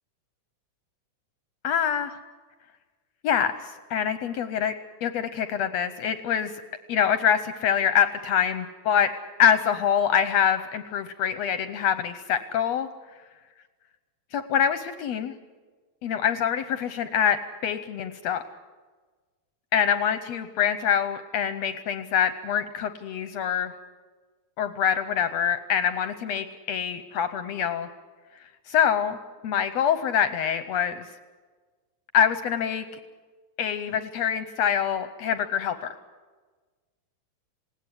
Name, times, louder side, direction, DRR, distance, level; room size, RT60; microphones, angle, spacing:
voice 1, 1.6-2.1 3.2-4.7 5.0-6.5 6.9-9.1 9.4-12.9 14.3-15.3 16.0-18.4 19.7-23.7 24.6-27.9 28.7-29.2 29.4-31.1 32.1-32.8 33.6-35.9, left 8 dB, 70° left, 11 dB, 1.7 m, -25 dB
20.0 x 17.5 x 9.8 m, 1.3 s
omnidirectional pair, 3.7 m